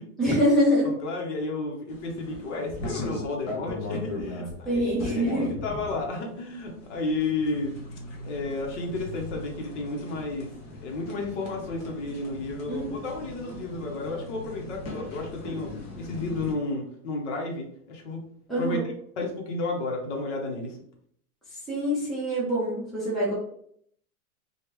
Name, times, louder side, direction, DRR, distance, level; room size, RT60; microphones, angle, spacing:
voice 1, 0.2-0.9 4.6-5.5 12.7-12.9 18.5-18.8 21.7-23.3, equal, ahead, -7 dB, 0.7 m, -25 dB
voice 2, 0.8-7.7 8.2-10.5 10.8-18.2 18.6-18.8 19.2-20.8, left 3 dB, 50° left, 1 dB, 0.9 m, -32 dB
sound 1, 1.9-16.5, left 2 dB, 20° left, 0.4 m, -39 dB
3.4 x 2.4 x 3.0 m, 0.66 s
hypercardioid pair, 145°, 45 cm